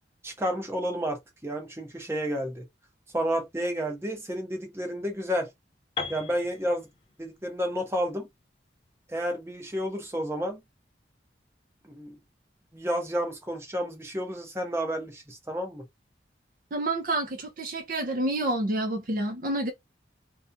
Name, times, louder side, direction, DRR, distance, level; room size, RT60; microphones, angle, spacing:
voice 1, 0.2-2.6 3.1-5.5 6.1-6.9 7.2-8.3 9.1-10.6 11.9-12.2 12.7-15.8, equal, 15° right, 0.7 m, -31 dB
Piano, 6.0-9.9, left 4 dB, 30° left, 0.5 m, -40 dB
voice 2, 16.7-19.7, right 1 dB, 45° right, 0.5 m, -28 dB
2.4 x 2.2 x 2.6 m
head